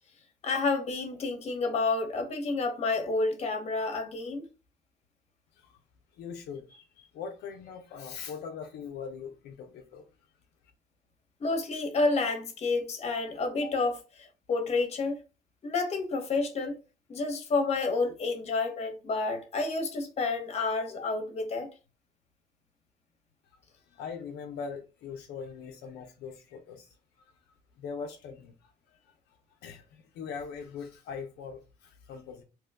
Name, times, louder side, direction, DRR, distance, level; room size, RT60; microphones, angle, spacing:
voice 1, 0.4-4.5 11.4-15.2 15.6-16.8 17.1-21.7, left 3 dB, 40° left, 0.9 m, -29 dB
voice 2, 6.1-10.1 23.9-27.0 27.8-28.7 29.1-29.2 29.6-32.4, left 6 dB, 75° left, 0.6 m, -41 dB
3.0 x 2.2 x 3.4 m
cardioid pair, 110°, 17 cm